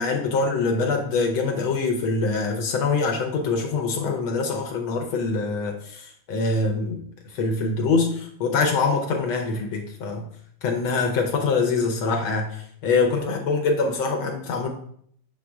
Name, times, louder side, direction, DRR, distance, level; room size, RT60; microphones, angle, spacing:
voice 1, 0.0-7.0 7.3-10.2 10.6-14.7, left 4 dB, 80° left, 3 dB, 1.6 m, -24 dB
6.1 x 4.6 x 3.4 m, 0.65 s
omnidirectional pair, 2.2 m